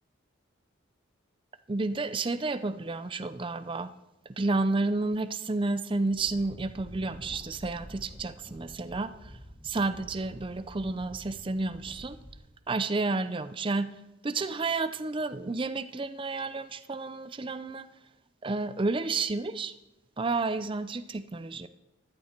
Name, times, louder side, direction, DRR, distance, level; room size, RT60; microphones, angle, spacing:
voice 1, 1.7-3.9 4.4-9.4 9.6-12.2 12.7-13.9 14.2-17.9 18.4-19.7 20.2-21.7, right 3 dB, 25° right, 12 dB, 0.4 m, -31 dB
sound 1, 6.2-12.3, equal, 5° right, 2.6 m, -48 dB
14.5 x 11.0 x 4.4 m, 1.0 s
head